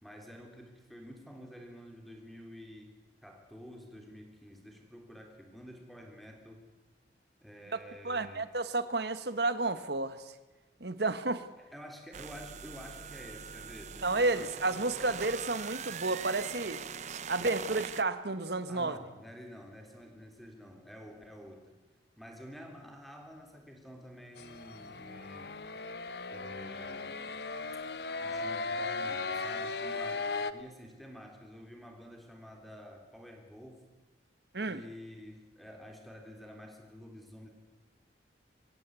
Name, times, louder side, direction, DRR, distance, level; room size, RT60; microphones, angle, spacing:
voice 1, 0.0-6.7 7.4-8.5 11.6-14.8 18.7-21.8 22.2-25.5 26.3-27.4 28.2-33.8 34.7-37.5, equal, ahead, 2 dB, 3.5 m, -50 dB
voice 2, 8.0-10.2 10.8-11.4 14.0-16.8 17.3-19.0 34.5-34.8, right 2 dB, 60° right, 12 dB, 1.2 m, -31 dB
sound 1, 12.1-18.0, right 6 dB, 40° right, 0.8 m, -42 dB
sound 2, 24.4-30.5, left 3 dB, 60° left, 1.0 m, -37 dB
25.0 x 16.0 x 8.2 m, 1.2 s
head